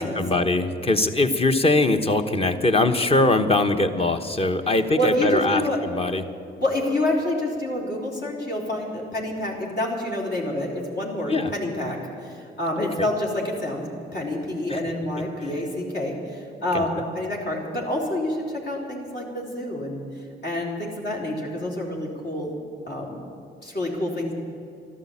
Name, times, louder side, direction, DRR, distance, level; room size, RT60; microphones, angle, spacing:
voice 1, 0.0-6.2 11.3-11.5 12.8-13.1 14.7-14.8 15.4-15.5 16.7-16.8, left 2 dB, 30° left, 7 dB, 1.2 m, -22 dB
voice 2, 4.9-5.8 6.6-20.0 20.4-22.5 22.9-23.2 23.6-24.3, left 1 dB, 60° left, -2 dB, 3.8 m, -28 dB
13.0 x 12.5 x 8.6 m, 2.7 s
cardioid pair, 90°, 20 cm